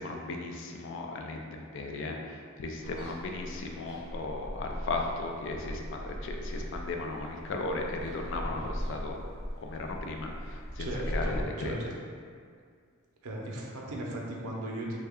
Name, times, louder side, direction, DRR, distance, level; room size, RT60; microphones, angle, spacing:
voice 1, 0.0-9.2 9.6-10.9 11.1-11.8, left 3 dB, 55° left, 2 dB, 0.3 m, -36 dB
sound 1, 2.8-11.5, equal, 25° right, 0.5 m, -39 dB
voice 2, 8.4-8.7 10.8-11.8 13.2-15.0, right 1 dB, 90° right, -2 dB, 0.6 m, -37 dB
3.2 x 2.2 x 3.5 m, 2.1 s
head